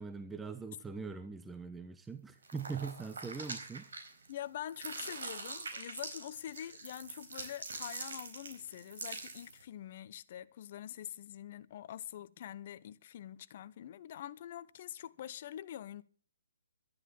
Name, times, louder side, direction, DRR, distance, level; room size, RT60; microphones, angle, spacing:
voice 1, 0.0-3.9, right 5 dB, 5° right, 0.9 m, -42 dB
sound 1, 2.4-4.4 4.7-9.6, right 3 dB, 65° right, 4.3 m, -44 dB
voice 2, 4.3-16.0, left 11 dB, 45° left, 0.8 m, -45 dB
12.5 x 11.0 x 7.0 m
figure-of-eight pair, 135°, 0 cm